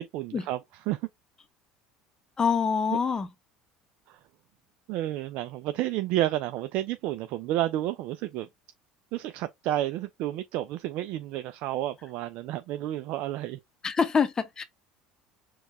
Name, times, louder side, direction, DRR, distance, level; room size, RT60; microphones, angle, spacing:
voice 1, 0.1-0.6 0.9-1.0 4.9-8.5 9.1-13.6, right 14 dB, 65° right, 0.3 m, -30 dB
voice 2, 2.4-3.3 13.8-14.6, left 6 dB, 25° left, 0.7 m, -25 dB
4.6 x 2.3 x 3.1 m
supercardioid pair, 100°, 3 cm